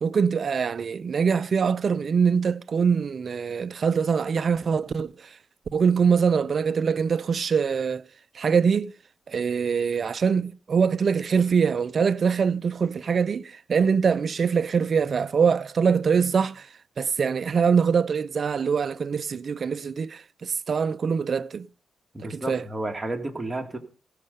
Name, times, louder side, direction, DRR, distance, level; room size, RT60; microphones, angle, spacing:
voice 1, 0.0-5.4 5.7-8.1 8.3-8.9 9.3-16.7 17.0-21.7 22.2-22.7, right 6 dB, 60° right, 0.5 m, -23 dB
voice 2, 22.1-23.8, right 2 dB, 25° right, 2.1 m, -31 dB
16.5 x 6.5 x 5.4 m
cardioid pair, 70°, 0 cm